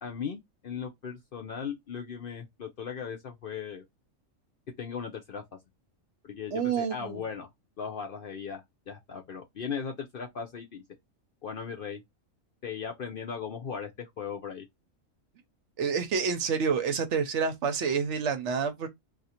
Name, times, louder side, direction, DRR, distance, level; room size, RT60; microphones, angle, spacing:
voice 1, 0.0-3.8 4.8-5.4 6.2-7.5 7.8-10.8 11.4-12.0 12.6-14.7, left 6 dB, 60° left, 0.6 m, -37 dB
voice 2, 6.5-7.2 15.8-18.9, right 6 dB, 65° right, 0.9 m, -28 dB
2.5 x 2.4 x 4.1 m
omnidirectional pair, 1.4 m